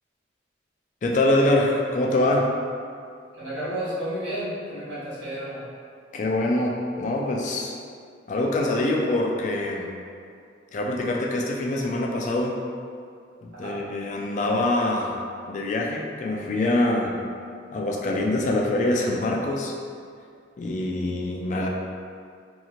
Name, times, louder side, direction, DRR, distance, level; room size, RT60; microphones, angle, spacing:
voice 1, 1.0-2.6 6.1-7.7 8.3-9.9 10.7-12.6 13.4-15.2 15.5-17.2 17.7-19.7 20.6-21.7, left 1 dB, 40° left, -1 dB, 0.3 m, -24 dB
voice 2, 3.3-5.6 13.5-13.8, right 1 dB, 85° right, -10 dB, 1.0 m, -32 dB
2.9 x 2.8 x 2.4 m, 2.3 s
head